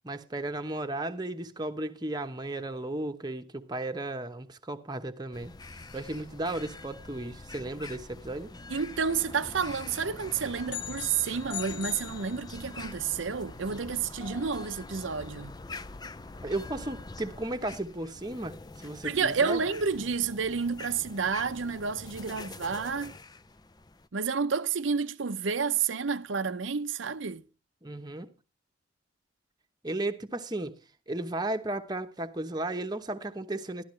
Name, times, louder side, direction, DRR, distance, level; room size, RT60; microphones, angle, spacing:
voice 1, 0.0-5.5 5.9-8.5 16.4-19.6 27.8-28.3 29.8-30.7 31.1-33.8, right 2 dB, 20° right, 1.0 m, -34 dB
sound 1, 5.3-24.1, left 2 dB, 20° left, 0.5 m, -45 dB
voice 2, 8.7-15.5 19.0-23.1 24.1-27.4, right 5 dB, 85° right, 0.7 m, -30 dB
sound 2, 10.7-12.9, left 11 dB, 55° left, 1.1 m, -40 dB
12.5 x 12.5 x 3.2 m
head